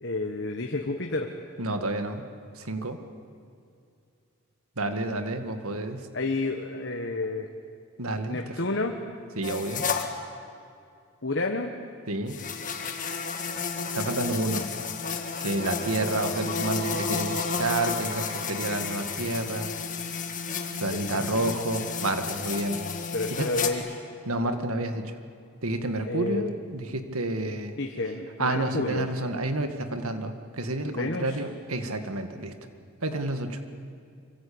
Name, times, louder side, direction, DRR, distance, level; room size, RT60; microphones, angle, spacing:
voice 1, 0.0-1.3 6.1-7.5 8.3-9.0 11.2-11.7 20.9-21.2 23.1-23.8 26.1-26.5 27.8-29.1 30.9-31.3, left 2 dB, 50° left, 3 dB, 1.4 m, -30 dB
voice 2, 1.6-2.3 2.5-3.0 4.8-6.1 8.0-8.6 9.4-9.9 12.1-12.4 13.9-14.7 15.4-19.7 20.8-22.8 23.3-23.5 24.3-25.2 25.6-27.8 28.4-32.6 33.0-33.6, right 2 dB, 75° right, 7 dB, 2.0 m, -30 dB
sound 1, 9.4-10.1 12.3-23.7, left 5 dB, 35° left, 1.9 m, -32 dB
25.5 x 23.5 x 8.8 m, 2.4 s
head